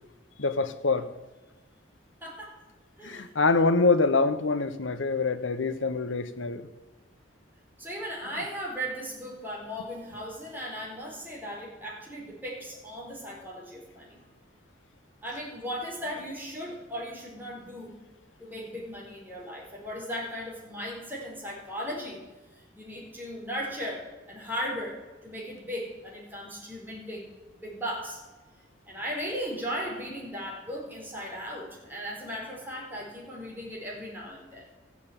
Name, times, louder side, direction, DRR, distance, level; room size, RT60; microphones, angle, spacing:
voice 1, 0.4-1.1 3.0-6.6, left 3 dB, 90° left, 11 dB, 1.0 m, -25 dB
voice 2, 2.2-2.6 3.0-3.3 7.8-14.2 15.2-18.0 18.4-22.2 22.5-27.3 27.6-28.2 28.9-34.7, equal, 10° right, -3 dB, 4.5 m, -37 dB
14.5 x 8.4 x 8.8 m, 1.2 s
head